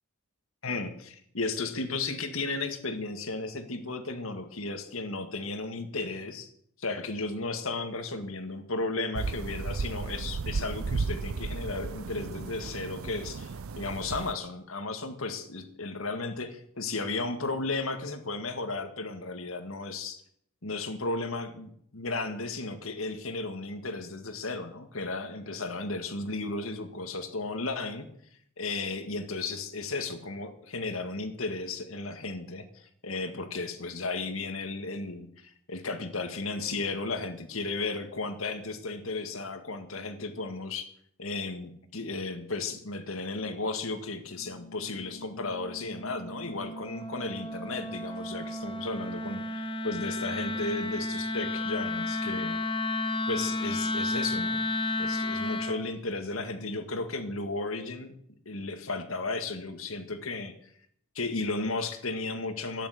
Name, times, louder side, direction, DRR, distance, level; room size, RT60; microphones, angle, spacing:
voice 1, 0.6-6.5 6.8-20.2 20.6-28.1 28.6-40.9 41.2-52.6 53.3-54.7 55.0-58.2 58.5-60.7 61.2-62.9, left 3 dB, 80° left, 8 dB, 1.9 m, -34 dB
sound 1, 9.1-14.3, right 4 dB, 85° right, 0.6 m, -34 dB
Wind instrument woodwind instrument, 44.3-55.8, left 2 dB, 25° left, 1.4 m, -33 dB
12.0 x 10.0 x 8.3 m, 0.68 s
head